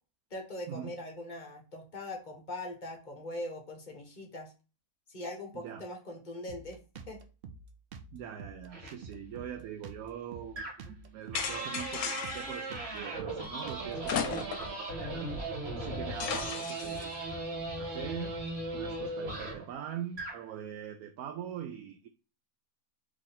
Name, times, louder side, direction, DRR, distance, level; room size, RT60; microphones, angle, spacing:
voice 1, 0.3-4.5 5.1-6.8 7.1-7.2, left 1 dB, 35° left, 1.0 m, -41 dB
Drum kit, 6.5-14.1, right 4 dB, 65° right, 0.6 m, -48 dB
voice 2, 8.1-15.3 15.8-18.4 18.7-22.1, right 9 dB, 80° right, 1.1 m, -42 dB
sound 1, 8.7-8.9 10.6-10.9 11.3-19.7 20.1-20.4, right 2 dB, 45° right, 1.7 m, -38 dB
sound 2, 11.3-12.6 14.0-14.8 15.1-15.2 16.2-17.0, left 7 dB, 75° left, 1.1 m, -35 dB
3.7 x 3.2 x 4.0 m
omnidirectional pair, 1.6 m